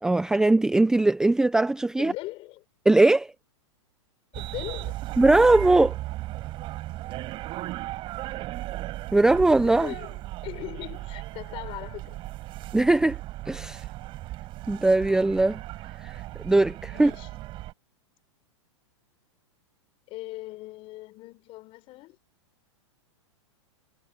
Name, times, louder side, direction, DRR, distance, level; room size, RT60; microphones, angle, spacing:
voice 1, 0.0-2.1 2.9-3.3 5.2-6.0 9.1-9.9 12.7-13.2 13.5-13.8 14.7-15.6 16.0-17.1, right 2 dB, 5° right, 0.8 m, -20 dB
voice 2, 2.0-2.6 4.3-5.0 9.6-12.2 16.9-17.3 20.1-22.2, left 19 dB, 35° left, 6.6 m, -40 dB
sound 1, 4.3-17.7, right 17 dB, 35° right, 6.7 m, -36 dB
hypercardioid pair, 140°, 16 cm